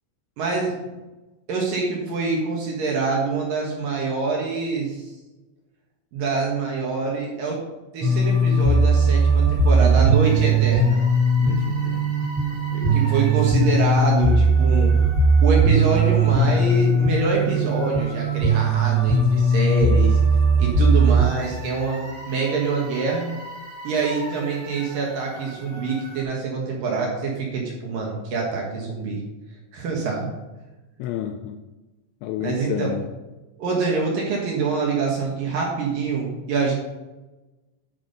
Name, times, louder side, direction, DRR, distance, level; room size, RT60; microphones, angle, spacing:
voice 1, 0.4-0.9 1.5-5.1 6.1-7.6 7.9-11.0 12.9-14.9 15.4-20.2 20.6-23.3 23.8-29.2 29.7-30.3 32.4-32.9 33.6-36.7, right 4 dB, 60° right, -2 dB, 2.6 m, -25 dB
sound 1, 8.0-26.2, right 2 dB, 40° right, 2.8 m, -20 dB
voice 2, 11.4-12.2 12.7-13.1 31.0-31.6 32.2-33.0, left 11 dB, 85° left, 6 dB, 2.8 m, -31 dB
10.0 x 6.0 x 5.3 m, 1.1 s
omnidirectional pair, 5.5 m